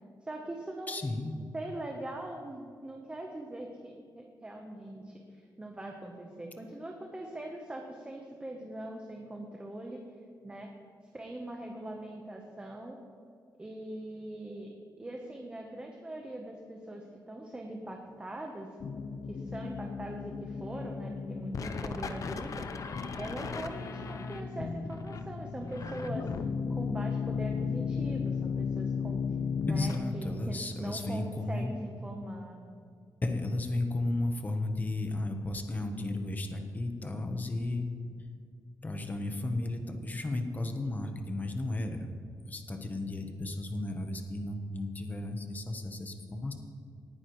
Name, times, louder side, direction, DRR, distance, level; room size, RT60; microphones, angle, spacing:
voice 1, 0.2-1.1 1.5-10.0 10.4-10.7 11.1-13.0 13.6-18.7 19.3-26.4 26.7-29.2 29.6-32.6, right 1 dB, 15° right, 1 dB, 0.9 m, -42 dB
voice 2, 0.9-1.3 29.7-31.8 33.2-37.9 38.8-42.1 42.4-46.5, left 2 dB, 25° left, 5 dB, 1.0 m, -34 dB
sound 1, 18.8-29.9, left 5 dB, 50° left, 0.6 m, -35 dB
18.5 x 9.6 x 3.1 m, 2.3 s
wide cardioid pair, 155°, 7 cm